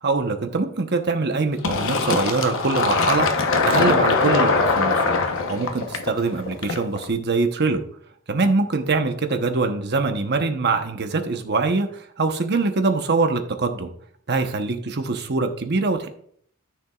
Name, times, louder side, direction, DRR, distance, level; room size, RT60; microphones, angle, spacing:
voice 1, 0.0-3.3 3.7-5.0 5.5-7.8 8.3-13.9 14.3-16.1, right 3 dB, 50° right, 6 dB, 1.0 m, -23 dB
Fill (with liquid), 1.6-7.0, left 4 dB, 65° left, 1.0 m, -21 dB
13.5 x 6.8 x 2.4 m, 0.63 s
head